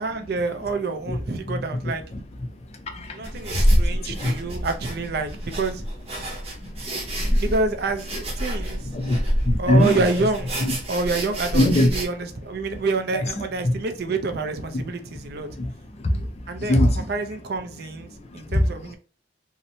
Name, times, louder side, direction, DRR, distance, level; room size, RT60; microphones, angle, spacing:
voice 1, 0.0-2.0 3.1-5.8 7.4-8.9 9.6-10.6 10.9-15.5 16.5-19.0, right 3 dB, 60° right, 0.4 m, -27 dB
voice 2, 1.5-1.9 2.8-4.4 6.6-7.4 8.9-10.0 10.6-10.7 11.5-11.9 13.6-13.8 15.6-15.7 16.0-17.0 18.3-18.6, left 1 dB, 35° left, 0.4 m, -23 dB
Breathing panicked, 3.2-12.1, equal, 35° right, 0.7 m, -27 dB
2.7 x 2.1 x 2.6 m
head